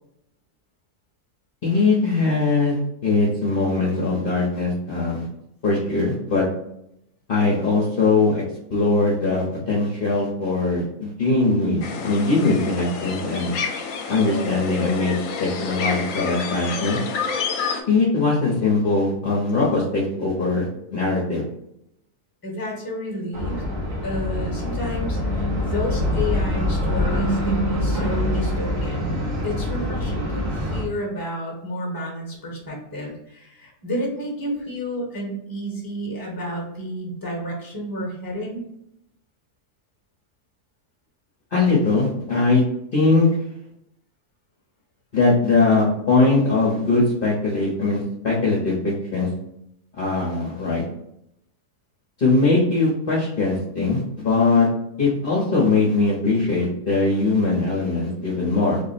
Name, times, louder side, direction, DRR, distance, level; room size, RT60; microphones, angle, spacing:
voice 1, 1.6-5.3 5.6-6.5 7.3-8.4 8.7-13.6 14.1-17.0 17.9-21.4 41.5-42.6 42.9-43.3 45.1-49.3 50.0-50.8 52.2-54.7 55.0-58.8, left 3 dB, 45° left, -5 dB, 0.9 m, -21 dB
sound 1, 11.8-17.8, left 5 dB, 75° left, 1.0 m, -29 dB
voice 2, 22.4-23.6 24.0-29.2 29.4-38.6, left 1 dB, 15° left, -2 dB, 1.0 m, -31 dB
sound 2, 23.3-30.8, left 1 dB, 75° right, 1.4 m, -24 dB
3.6 x 2.1 x 4.0 m, 0.77 s
omnidirectional pair, 1.4 m